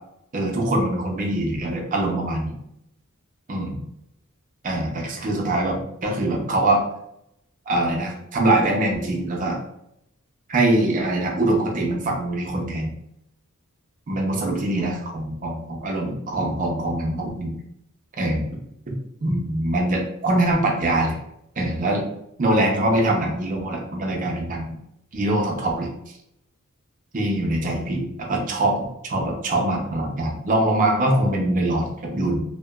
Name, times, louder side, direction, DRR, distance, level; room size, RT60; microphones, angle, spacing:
voice 1, 0.3-2.5 3.5-3.8 4.6-6.8 7.7-9.6 10.5-12.9 14.1-17.5 18.2-18.4 18.9-21.2 21.6-22.0 22.4-24.7 25.1-25.9 27.1-32.4, right 1 dB, 40° right, 0 dB, 0.5 m, -23 dB
2.8 x 2.1 x 2.2 m, 0.79 s
head